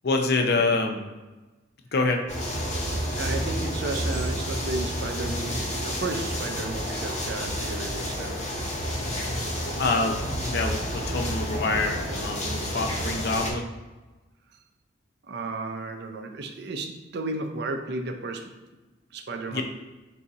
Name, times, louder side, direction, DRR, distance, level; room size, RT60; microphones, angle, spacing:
voice 1, 0.0-1.1 1.9-2.2 9.8-13.7 19.5-19.6, left 3 dB, 55° left, 3 dB, 0.5 m, -26 dB
sound 1, 2.3-13.5, equal, 40° left, 0.9 m, -30 dB
voice 2, 2.9-8.6 15.2-18.6 19.1-19.6, right 3 dB, 60° right, 5 dB, 0.5 m, -33 dB
4.0 x 2.7 x 4.7 m, 1.2 s
head